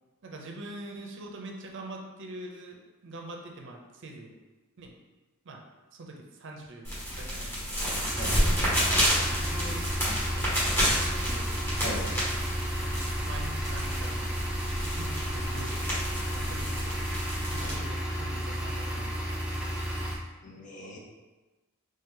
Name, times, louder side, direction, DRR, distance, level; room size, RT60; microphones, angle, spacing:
voice 1, 0.2-4.3 4.8-4.9 5.4-5.6 5.9-7.7 8.2-10.6 10.9-11.5 12.1-12.4 13.2-14.3 14.8-17.1 17.5-19.7, right 2 dB, 55° right, 1 dB, 0.5 m, -44 dB
sound 1, 6.8-17.7, equal, 10° left, 1.4 m, -30 dB
sound 2, 8.0-20.2, equal, 5° right, 0.5 m, -32 dB
voice 2, 11.7-12.1 17.5-17.8 20.4-21.0, left 1 dB, 35° left, -2 dB, 0.7 m, -39 dB
3.2 x 2.8 x 3.7 m, 1.2 s
head